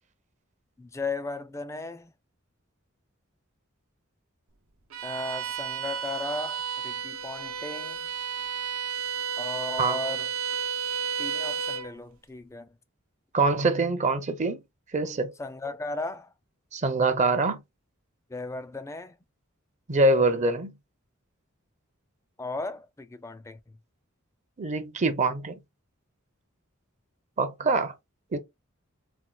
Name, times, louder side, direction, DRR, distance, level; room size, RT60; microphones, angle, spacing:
voice 1, 0.8-2.1 5.0-8.1 9.4-10.3 11.2-12.7 15.4-16.3 18.3-19.2 22.4-23.6, left 3 dB, 15° left, 0.4 m, -36 dB
Bowed string instrument, 4.9-11.9, right 7 dB, 80° right, 0.7 m, -32 dB
voice 2, 13.3-14.6 14.9-15.3 16.7-17.6 19.9-20.7 24.6-25.6 27.4-27.9 28.3-28.4, right 3 dB, 35° right, 0.5 m, -24 dB
4.3 x 2.2 x 2.2 m
head